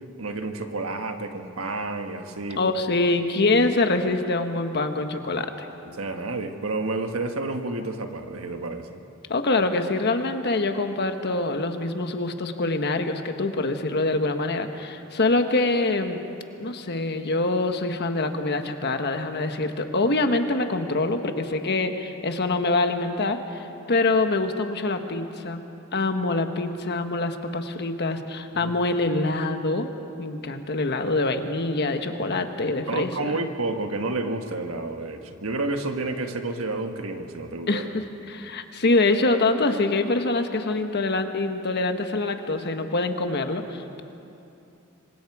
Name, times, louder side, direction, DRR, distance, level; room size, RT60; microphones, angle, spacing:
voice 1, 0.2-2.7 5.9-9.0 28.5-28.7 32.9-37.8, right 2 dB, 75° right, 6 dB, 1.5 m, -30 dB
voice 2, 2.6-5.7 9.3-16.2 16.6-25.6 25.9-29.9 30.2-33.4 37.7-44.0, left 2 dB, 50° left, 7 dB, 1.3 m, -25 dB
26.5 x 24.5 x 4.9 m, 2.7 s
head